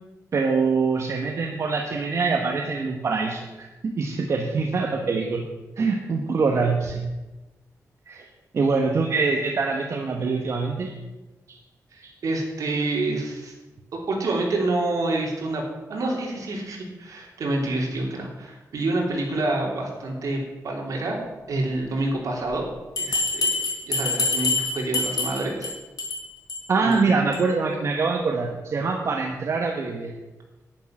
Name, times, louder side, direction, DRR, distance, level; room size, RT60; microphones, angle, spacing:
voice 1, 0.3-5.5 5.8-7.1 8.1-8.2 8.5-10.9 12.0-12.1 26.7-30.1, right 4 dB, 50° right, 1 dB, 1.2 m, -24 dB
voice 2, 11.9-13.5 13.9-15.6 15.9-21.2 21.5-22.6 23.0-25.7 26.8-27.1, right 2 dB, 70° right, -1 dB, 3.2 m, -27 dB
Bell, 23.0-25.7 26.0-26.2 26.5-26.6 26.9-27.0 27.3-27.4, left 3 dB, 80° left, 4.1 m, -25 dB
10.5 x 10.0 x 5.9 m, 1.1 s
wide cardioid pair, 165°, 6 cm